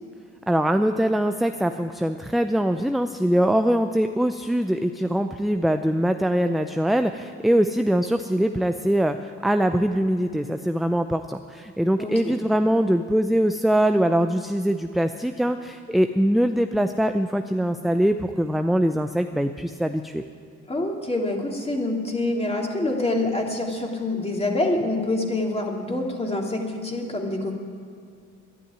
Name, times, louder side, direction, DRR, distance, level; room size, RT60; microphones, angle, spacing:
voice 1, 0.5-20.2, equal, ahead, 7 dB, 0.5 m, -22 dB
voice 2, 12.0-12.3 20.7-27.5, left 2 dB, 20° left, 0 dB, 2.8 m, -26 dB
12.5 x 11.0 x 9.7 m, 2.3 s
cardioid pair, 90°, 30 cm